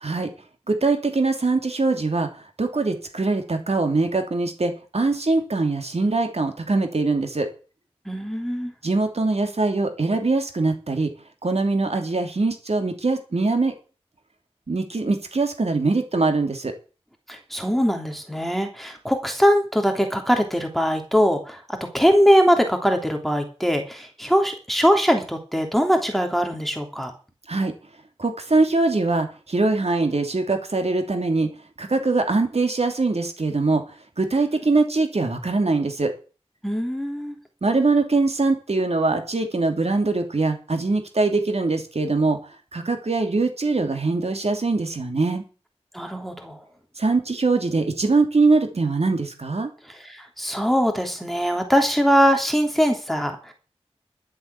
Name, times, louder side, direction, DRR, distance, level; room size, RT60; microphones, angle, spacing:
voice 1, 0.0-0.3 0.7-2.3 2.6-7.5 8.8-11.1 11.4-13.7 14.7-16.7 27.5-27.7 28.2-31.5 31.8-33.8 34.2-36.1 37.6-42.4 42.7-45.4 47.0-49.7, right 3 dB, 70° right, 5 dB, 2.8 m, -22 dB
voice 2, 8.0-8.7 17.3-27.1 36.6-37.4 45.9-46.6 49.9-53.5, equal, ahead, 4 dB, 3.2 m, -21 dB
12.0 x 7.7 x 8.3 m, 0.35 s
wide cardioid pair, 50°, 11 cm